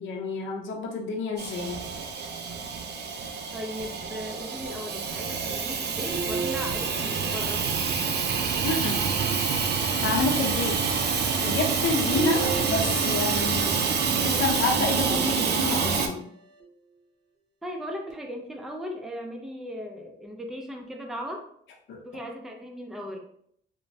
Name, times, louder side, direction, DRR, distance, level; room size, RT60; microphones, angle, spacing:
voice 1, 0.0-1.7 8.6-9.1 10.0-10.8 11.4-13.8 14.2-16.2 21.9-22.0, left 3 dB, 75° left, 1 dB, 0.7 m, -29 dB
Hiss / Toilet flush / Trickle dribble, 1.4-16.1, right 5 dB, 55° right, 0.5 m, -27 dB
voice 2, 3.5-7.6 17.6-21.4 22.0-23.2, equal, ahead, 2 dB, 0.4 m, -37 dB
sound 1, 6.1-8.4 9.1-10.1 12.1-14.2 15.1-16.0 16.6-16.7 18.1-18.2, right 4 dB, 35° right, 0.8 m, -36 dB
3.0 x 2.1 x 2.7 m, 0.68 s
cardioid pair, 90°, 20 cm